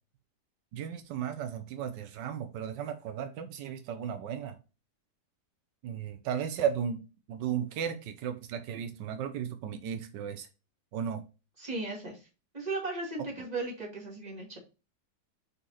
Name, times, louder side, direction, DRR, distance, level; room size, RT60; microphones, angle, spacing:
voice 1, 0.7-4.6 5.8-7.0 7.3-10.5 10.9-11.2, right 8 dB, 85° right, 8 dB, 1.4 m, -35 dB
voice 2, 11.6-12.3 12.5-14.6, right 3 dB, 25° right, -2 dB, 2.3 m, -36 dB
5.5 x 4.2 x 4.1 m, 0.31 s
omnidirectional pair, 1.8 m